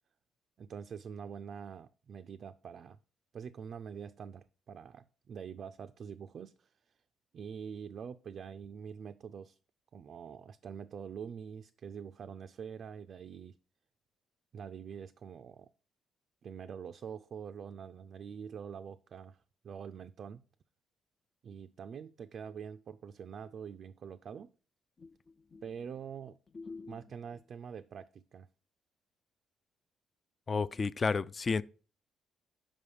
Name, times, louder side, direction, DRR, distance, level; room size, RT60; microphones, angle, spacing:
voice 1, 0.6-3.0 3.3-6.9 7.3-9.6 9.9-13.6 14.5-15.7 16.4-20.4 21.4-24.5 25.6-26.4 26.9-28.5, right 7 dB, 55° right, 0.3 m, -45 dB
voice 2, 26.6-26.9 30.5-31.6, left 4 dB, 35° left, 0.3 m, -32 dB
5.5 x 5.2 x 4.9 m
cardioid pair, 90°, 0 cm